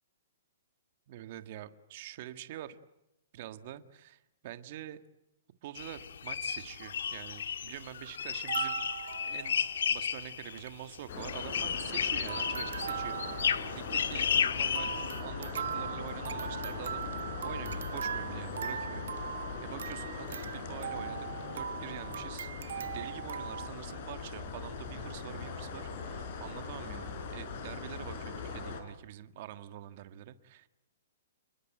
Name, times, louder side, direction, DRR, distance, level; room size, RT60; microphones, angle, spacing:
voice 1, 1.1-2.8 3.3-5.0 5.6-8.8 9.2-9.6 9.9-21.3 21.5-22.5 22.8-30.7, right 12 dB, 35° right, 10 dB, 1.5 m, -46 dB
sound 1, 5.8-15.2, left 8 dB, 70° left, 1.5 m, -33 dB
sound 2, 8.3-10.0 10.2-10.3 10.5-10.8 11.2-12.0 12.3-23.7, right 8 dB, 65° right, 1.4 m, -40 dB
sound 3, 11.1-28.8, left 5 dB, 35° left, 4.9 m, -40 dB
30.0 x 21.5 x 9.0 m, 0.89 s
hypercardioid pair, 175°, 0 cm